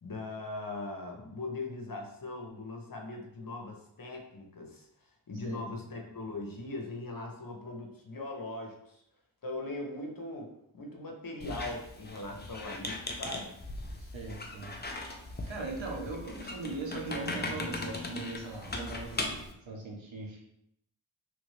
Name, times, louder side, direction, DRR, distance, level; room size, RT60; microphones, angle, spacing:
voice 1, 0.0-4.9 5.3-9.0 9.4-10.5 10.7-13.6 15.9-16.0, left 2 dB, 45° left, 1 dB, 0.9 m, -40 dB
Squeak, 11.4-19.5, left 2 dB, 20° left, 0.5 m, -39 dB
voice 2, 14.0-14.8 15.5-20.4, right 3 dB, 75° right, -1 dB, 0.9 m, -40 dB
3.2 x 2.6 x 3.2 m, 0.76 s
cardioid pair, 50°, 46 cm